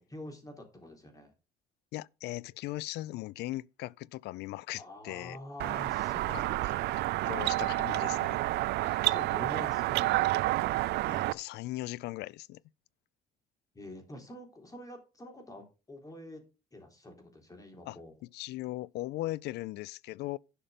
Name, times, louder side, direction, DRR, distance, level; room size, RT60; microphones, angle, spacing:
voice 1, 0.0-1.3 4.8-7.0 9.1-10.2 13.7-16.4 16.7-18.2, left 1 dB, 20° left, 3.7 m, -46 dB
voice 2, 1.9-5.4 6.3-6.8 7.2-8.4 8.7-9.1 11.0-12.6 17.9-18.0 18.3-20.4, left 17 dB, 80° left, 0.4 m, -39 dB
sound 1, 5.6-11.3, right 18 dB, 75° right, 0.5 m, -29 dB
11.5 x 5.7 x 5.0 m
cardioid pair, 110°, 17 cm